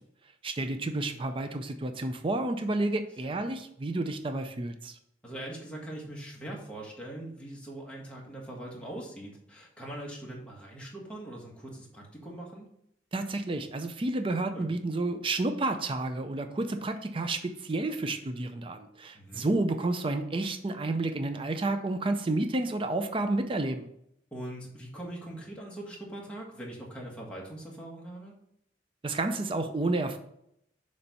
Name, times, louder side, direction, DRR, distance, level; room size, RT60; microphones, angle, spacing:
voice 1, 0.4-5.0 13.1-23.9 29.0-30.2, right 2 dB, 30° right, 7 dB, 0.5 m, -30 dB
voice 2, 5.2-12.7 14.5-14.7 19.1-19.5 24.3-28.4, right 1 dB, 5° left, -3 dB, 1.5 m, -42 dB
6.9 x 3.3 x 5.3 m, 0.76 s
head